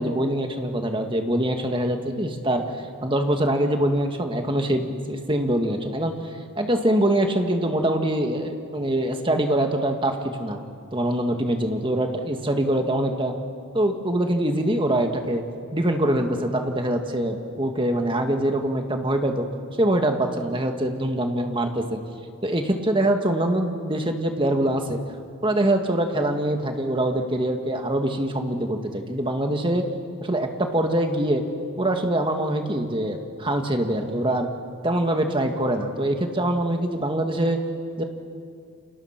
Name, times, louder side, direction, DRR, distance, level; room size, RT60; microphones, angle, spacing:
voice 1, 0.0-2.6 3.0-10.6 10.9-13.3 13.7-15.4 15.7-19.5 19.8-22.0 22.4-25.0 25.4-29.9 30.2-31.4 31.8-34.5 34.8-37.6 38.0-38.1, right 1 dB, 20° right, 4 dB, 1.8 m, -24 dB
30.0 x 26.0 x 6.0 m, 2.3 s
head